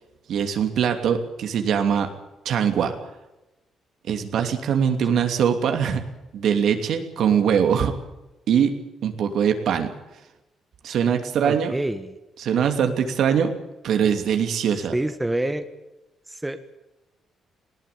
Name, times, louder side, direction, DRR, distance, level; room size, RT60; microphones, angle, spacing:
voice 1, 0.3-2.1 2.4-2.9 4.1-6.0 6.3-7.9 8.5-9.9 10.8-11.7 12.4-13.5 13.8-14.9, right 8 dB, 70° right, 6 dB, 2.9 m, -22 dB
voice 2, 11.4-12.2 14.9-15.7 16.3-16.6, right 1 dB, 10° right, 8 dB, 1.7 m, -27 dB
19.5 x 18.0 x 8.7 m, 0.98 s
cardioid pair, 90°, 0 cm